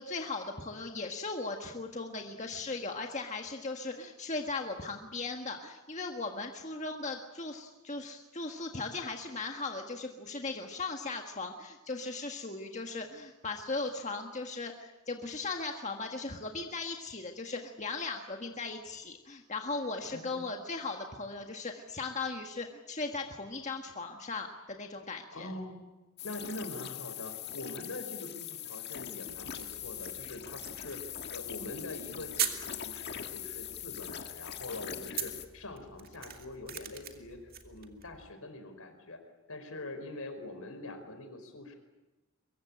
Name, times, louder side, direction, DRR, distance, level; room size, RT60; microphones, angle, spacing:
voice 1, 0.0-25.5 34.7-34.8, left 3 dB, 30° left, 3 dB, 1.5 m, -38 dB
voice 2, 25.3-25.8 26.2-39.2 39.5-41.7, left 2 dB, 75° left, 7 dB, 4.8 m, -44 dB
sound 1, 26.2-35.5, left 10 dB, 50° left, 1.8 m, -42 dB
sound 2, 29.2-38.3, right 10 dB, 40° right, 2.3 m, -42 dB
24.0 x 22.5 x 8.8 m, 1.1 s
head